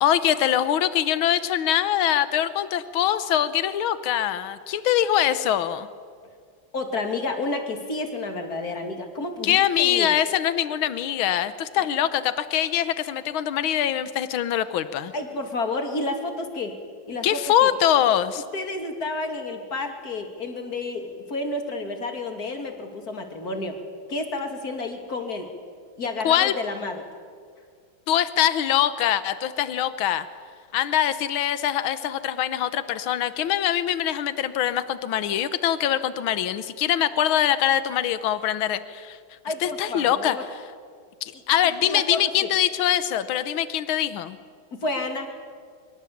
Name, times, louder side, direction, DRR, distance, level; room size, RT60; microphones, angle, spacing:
voice 1, 0.0-5.9 9.4-15.1 17.2-18.4 26.3-26.5 28.1-30.3 30.7-39.2 39.6-40.4 41.2-44.4, left 11 dB, 80° left, 13 dB, 1.8 m, -23 dB
voice 2, 6.7-10.1 11.8-11.9 15.1-16.8 17.1-17.7 18.5-23.8 24.1-25.5 26.0-27.1 39.4-40.4 41.8-42.5 44.7-45.3, left 2 dB, 45° left, 5 dB, 3.1 m, -30 dB
24.5 x 24.0 x 8.6 m, 2.1 s
omnidirectional pair, 2.2 m